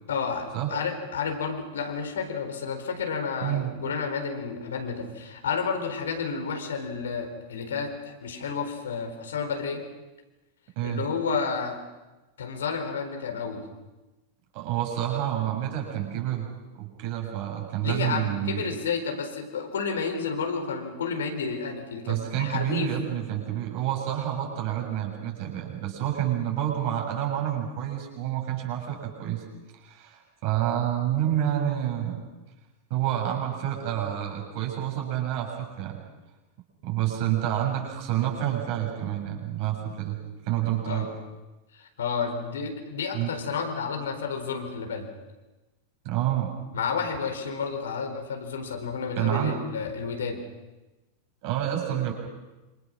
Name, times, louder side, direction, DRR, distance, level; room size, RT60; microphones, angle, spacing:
voice 1, 0.1-9.8 10.8-11.8 12.4-13.6 17.8-22.9 40.9-41.1 41.7-45.1 46.7-50.4, left 5 dB, 65° left, 5 dB, 4.3 m, -31 dB
voice 2, 3.4-3.7 10.8-11.1 14.5-16.5 16.7-18.6 22.1-29.4 29.8-32.2 32.9-36.0 36.8-40.2 40.5-41.1 43.1-43.5 46.0-46.5 49.2-49.6 51.4-52.1, right 11 dB, 45° right, 2 dB, 7.2 m, -28 dB
27.5 x 26.5 x 6.3 m, 1.1 s
figure-of-eight pair, 90°, 0 cm